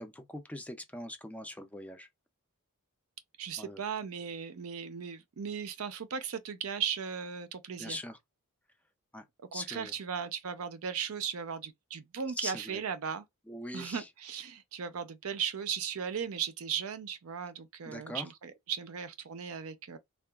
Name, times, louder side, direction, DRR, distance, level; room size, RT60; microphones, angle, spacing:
voice 1, 0.0-2.1 3.6-3.8 7.8-8.2 9.1-9.2 9.5-9.9 12.4-12.8 13.5-14.1 17.8-18.3, left 1 dB, 5° left, 0.4 m, -41 dB
voice 2, 3.4-8.0 9.5-13.3 13.7-20.0, right 7 dB, 70° right, 0.5 m, -37 dB
3.7 x 2.3 x 2.3 m
head